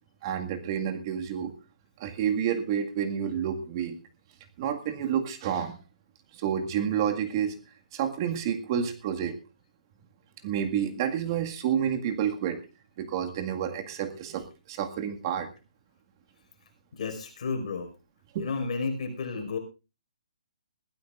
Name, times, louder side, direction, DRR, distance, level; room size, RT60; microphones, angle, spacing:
voice 1, 0.2-1.5 2.0-4.0 4.6-5.8 6.4-7.6 7.9-9.4 10.4-12.6 13.0-15.5 18.3-18.5, right 8 dB, 35° right, 5 dB, 2.0 m, -29 dB
voice 2, 16.9-17.9 18.4-19.6, left 4 dB, 55° left, 4 dB, 5.3 m, -32 dB
21.5 x 15.5 x 2.5 m, 0.30 s
hypercardioid pair, 160°, 4 cm